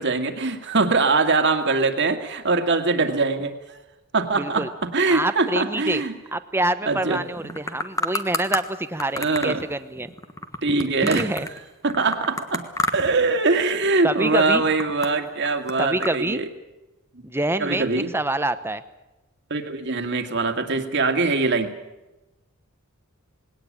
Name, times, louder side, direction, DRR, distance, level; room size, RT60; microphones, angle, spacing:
voice 1, 0.0-3.8 4.1-6.2 6.9-7.5 9.2-9.6 10.6-11.3 11.8-12.7 12.9-16.5 17.6-18.1 19.5-21.7, right 3 dB, 55° right, 6 dB, 2.2 m, -22 dB
voice 2, 4.4-4.7 5.1-6.0 6.3-10.1 11.0-11.5 14.0-14.6 15.8-16.4 17.2-18.8, right 2 dB, 10° right, 11 dB, 0.9 m, -26 dB
sound 1, 7.3-8.6 9.0-11.6 11.9-13.2 13.5-14.0 14.4-16.2, left 2 dB, 15° left, 1.4 m, -29 dB
20.0 x 18.0 x 8.8 m, 1.0 s
head